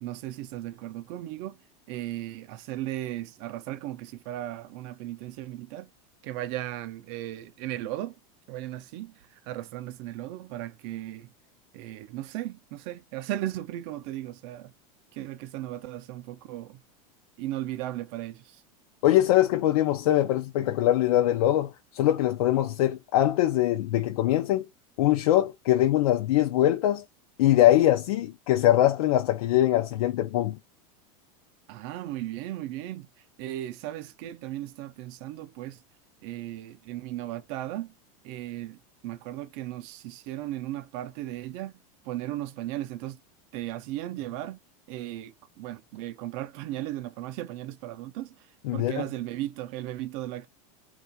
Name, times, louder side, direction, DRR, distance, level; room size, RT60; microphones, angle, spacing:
voice 1, 0.0-1.6 1.9-5.9 6.2-8.2 8.5-9.1 9.4-11.3 11.7-14.7 15.1-16.8 17.4-18.6 31.7-33.1 33.4-35.8 36.2-37.9 38.2-41.7 42.0-43.2 43.5-44.6 44.9-48.5 48.7-50.5, right 14 dB, 50° right, 0.5 m, -36 dB
voice 2, 19.0-24.7 25.0-27.0 27.4-30.6 48.6-49.1, left 13 dB, 75° left, 0.5 m, -22 dB
3.2 x 2.4 x 2.6 m
supercardioid pair, 155°, 19 cm